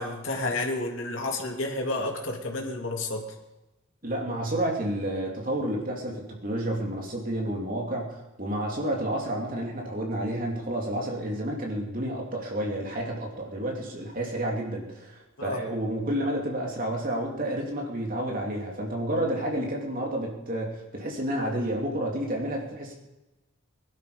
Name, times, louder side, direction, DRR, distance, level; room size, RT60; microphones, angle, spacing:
voice 1, 0.0-3.2 15.4-15.6, left 2 dB, 75° left, 1 dB, 2.7 m, -30 dB
voice 2, 4.0-22.9, right 1 dB, 45° right, -1 dB, 3.1 m, -30 dB
21.5 x 12.0 x 5.2 m, 1.0 s
head